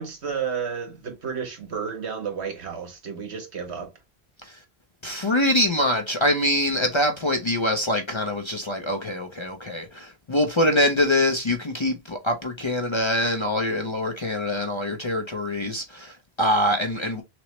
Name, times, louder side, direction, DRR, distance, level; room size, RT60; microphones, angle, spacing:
voice 1, 0.0-3.9, right 6 dB, 85° right, 1.3 m, -32 dB
voice 2, 5.0-17.2, left 1 dB, 40° left, 0.5 m, -24 dB
5.9 x 2.0 x 3.0 m
omnidirectional pair, 1.1 m